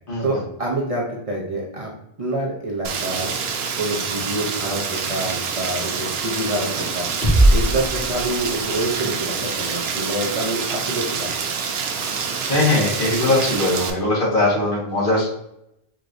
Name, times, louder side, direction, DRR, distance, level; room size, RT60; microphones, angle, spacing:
voice 1, 0.2-1.9 2.2-3.3 3.8-7.1 7.5-11.3, right 1 dB, 40° right, -3 dB, 0.8 m, -27 dB
Rain, 2.8-13.9, right 6 dB, 80° right, 0.8 m, -27 dB
sound 1, 7.2-8.9, right 1 dB, 85° left, 1.9 m, -19 dB
voice 2, 12.5-15.3, left 2 dB, 60° left, -6 dB, 1.6 m, -20 dB
4.7 x 3.0 x 2.5 m, 0.79 s
omnidirectional pair, 1.0 m